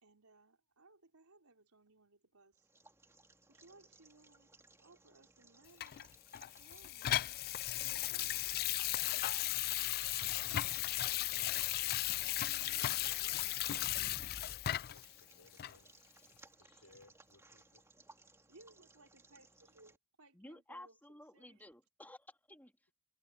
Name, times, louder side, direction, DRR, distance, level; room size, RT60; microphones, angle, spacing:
voice 1, 0.0-2.7 3.5-4.5 4.8-6.1 6.5-7.3 7.9-8.6 10.4-10.8 11.9-12.0 12.4-13.0 18.5-21.6 22.0-22.1, right 2 dB, 75° right, 4.4 m, -64 dB
sound 1, 2.5-20.0, right 3 dB, 10° right, 2.7 m, -64 dB
Water tap faucet / Sink (filling or washing), 5.8-15.1 15.6-15.7, left 14 dB, 45° left, 0.3 m, -36 dB
voice 2, 10.1-11.9 12.7-16.2 16.6-18.3, left 3 dB, 85° left, 4.8 m, -66 dB
sound 2, 13.8-15.1 16.9-17.0, left 2 dB, 30° left, 1.3 m, -57 dB
voice 3, 20.3-22.9, left 1 dB, 10° left, 2.9 m, -54 dB
head